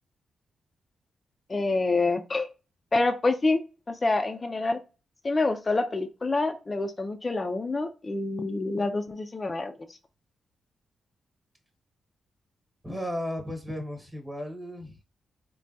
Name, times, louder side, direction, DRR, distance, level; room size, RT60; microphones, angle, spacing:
voice 1, 1.5-2.5 2.9-3.6 3.9-4.8 5.2-9.7, left 3 dB, 30° left, 7 dB, 0.3 m, -27 dB
voice 2, 12.8-15.0, left 1 dB, 10° right, 3 dB, 1.0 m, -35 dB
3.3 x 2.2 x 2.6 m, 0.32 s
cardioid pair, 95°, 0 cm